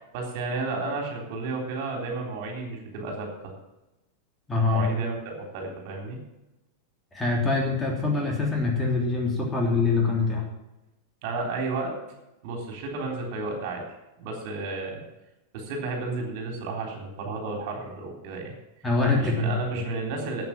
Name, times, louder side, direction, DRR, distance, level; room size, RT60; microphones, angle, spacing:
voice 1, 0.0-3.5 4.7-6.2 11.2-11.9 12.4-13.8 14.2-15.0 15.5-18.5 19.1-20.4, right 3 dB, 45° right, 1 dB, 3.7 m, -32 dB
voice 2, 4.5-4.9 7.1-10.4 18.8-19.5, left 3 dB, 10° left, -1 dB, 3.2 m, -24 dB
12.5 x 8.5 x 7.6 m, 0.96 s
figure-of-eight pair, 90°, 0 cm